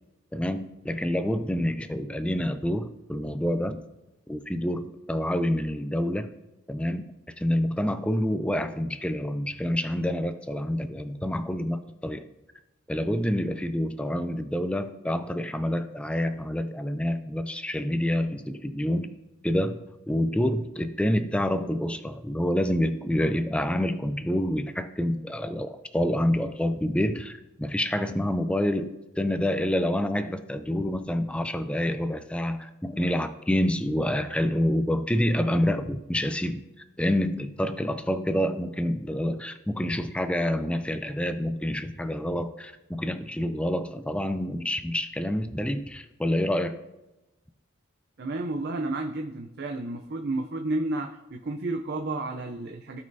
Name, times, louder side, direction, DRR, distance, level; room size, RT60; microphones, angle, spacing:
voice 1, 0.3-3.8 4.3-6.3 6.7-12.2 12.9-19.2 19.4-36.6 37.0-46.8, left 1 dB, 5° left, 10 dB, 0.4 m, -27 dB
voice 2, 48.2-53.0, right 2 dB, 50° right, 3 dB, 0.5 m, -31 dB
15.5 x 5.3 x 2.7 m, 1.0 s
head